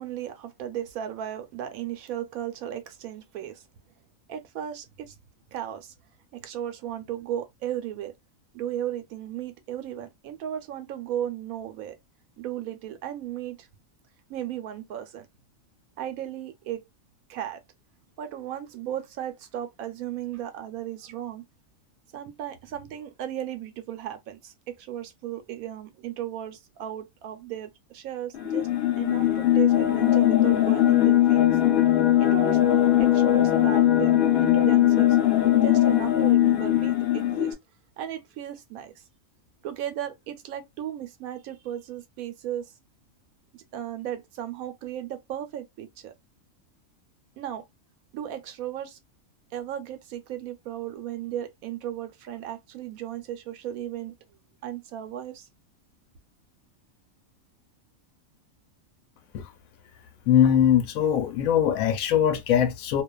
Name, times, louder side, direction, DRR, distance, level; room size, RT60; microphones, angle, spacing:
voice 1, 0.0-3.6 4.3-5.2 5.5-5.9 6.3-8.1 8.5-12.0 12.4-13.7 14.3-15.3 16.0-16.8 17.3-17.6 18.2-21.4 22.1-28.7 29.0-31.5 32.2-35.2 35.6-37.6 38.0-39.0 39.6-42.7 43.7-46.1 47.4-47.6 48.1-49.0 49.5-54.1 54.6-55.5, right 11 dB, 85° right, 1.1 m, -35 dB
sound 1, 28.3-37.5, left 12 dB, 60° left, 0.7 m, -20 dB
voice 2, 60.3-63.0, left 9 dB, 80° left, 1.0 m, -21 dB
2.4 x 2.3 x 2.2 m
omnidirectional pair, 1.4 m